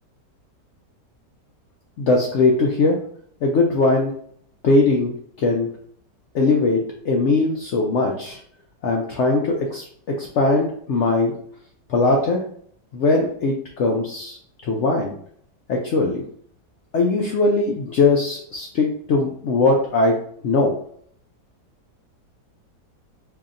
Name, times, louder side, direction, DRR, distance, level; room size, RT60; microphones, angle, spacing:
voice 1, 2.0-3.0 3.4-4.1 4.6-5.1 5.4-5.7 6.3-8.4 8.8-9.9 10.2-11.3 11.9-12.4 12.9-14.4 14.6-15.1 15.7-16.2 16.9-20.8, left 3 dB, 85° left, 0 dB, 0.6 m, -20 dB
4.8 x 2.7 x 2.5 m, 0.63 s
omnidirectional pair, 1.8 m